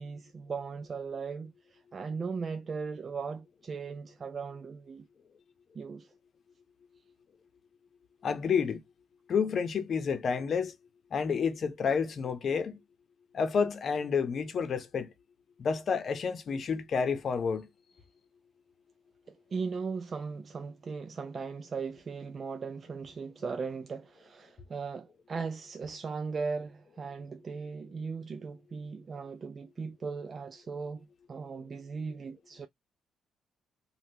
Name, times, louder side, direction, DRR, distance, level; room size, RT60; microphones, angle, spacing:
voice 1, 0.0-5.1 5.7-6.1 19.3-32.7, right 5 dB, 40° right, 0.4 m, -38 dB
voice 2, 8.2-8.8 9.3-10.8 11.1-12.8 13.3-15.1 15.6-17.7, left 6 dB, 55° left, 0.7 m, -29 dB
3.5 x 2.3 x 2.7 m
cardioid pair, 90°, 0 cm